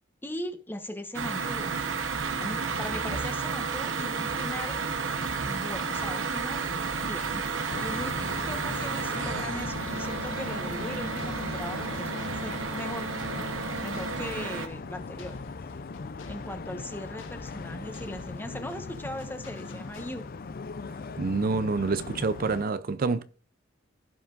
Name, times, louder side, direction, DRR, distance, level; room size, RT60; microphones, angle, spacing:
voice 1, 0.2-1.8 2.4-4.8 5.5-6.7 7.0-7.5 7.8-8.2 8.5-13.1 13.8-15.4 16.3-20.3, left 1 dB, 10° left, 1.1 m, -39 dB
sound 1, 1.1-14.7, right 5 dB, 85° right, 1.1 m, -32 dB
sound 2, 4.2-20.6, left 1 dB, 85° left, 2.0 m, -50 dB
sound 3, 7.7-22.6, left 4 dB, 50° left, 0.5 m, -39 dB
voice 2, 21.2-23.2, right 4 dB, 50° right, 0.5 m, -27 dB
16.0 x 5.9 x 2.6 m
head